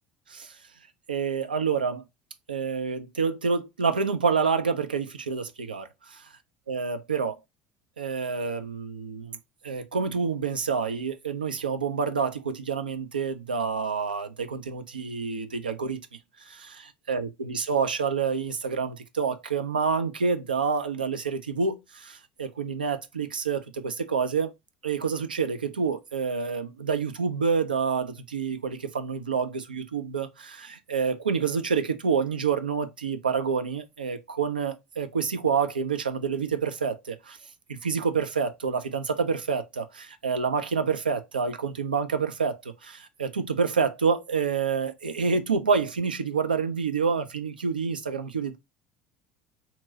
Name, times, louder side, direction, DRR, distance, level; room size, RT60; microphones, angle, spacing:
voice 1, 1.1-2.0 2.5-5.9 6.7-7.4 8.0-9.4 9.6-16.0 16.5-16.8 17.1-24.5 24.8-37.4 37.7-48.6, right 5 dB, 85° right, 0.4 m, -28 dB
2.9 x 2.5 x 4.0 m
figure-of-eight pair, 65°, 5 cm